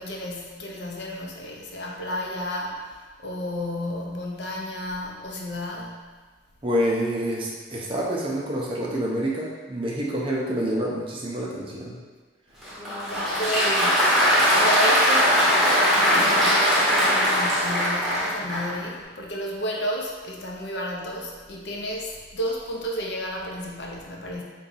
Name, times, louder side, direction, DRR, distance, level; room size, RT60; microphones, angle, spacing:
voice 1, 0.0-6.1 12.6-12.8 13.1-24.4, equal, 60° left, -1 dB, 0.6 m, -32 dB
voice 2, 6.6-12.0, equal, 25° right, -3 dB, 0.5 m, -27 dB
Applause, 12.6-18.8, equal, ahead, 0.8 m, -20 dB
3.9 x 2.3 x 3.9 m, 1.4 s
head